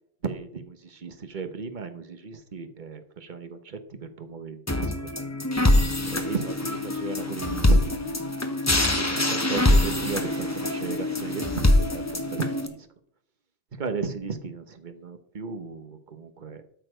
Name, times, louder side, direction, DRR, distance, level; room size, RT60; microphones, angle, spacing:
voice 1, 0.2-5.1 6.1-8.3 9.0-12.9 13.7-16.6, right 5 dB, 40° right, 8 dB, 1.2 m, -35 dB
sound 1, 4.7-12.7, left 1 dB, 15° left, 1.0 m, -24 dB
13.0 x 6.9 x 5.1 m, 0.65 s
omnidirectional pair, 1.3 m